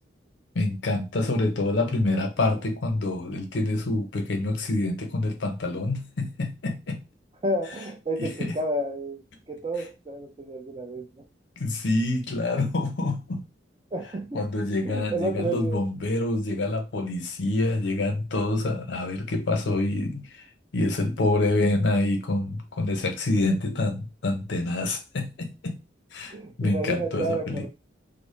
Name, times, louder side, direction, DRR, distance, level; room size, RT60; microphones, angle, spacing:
voice 1, 0.5-7.0 8.2-8.6 11.6-13.4 14.3-20.5 20.7-25.8 26.1-27.6, left 2 dB, 75° left, 0.6 m, -27 dB
voice 2, 7.4-9.2 9.5-11.2 13.9-14.4 14.8-15.8 26.3-27.7, right 1 dB, 30° right, 0.4 m, -30 dB
2.0 x 2.0 x 3.0 m
head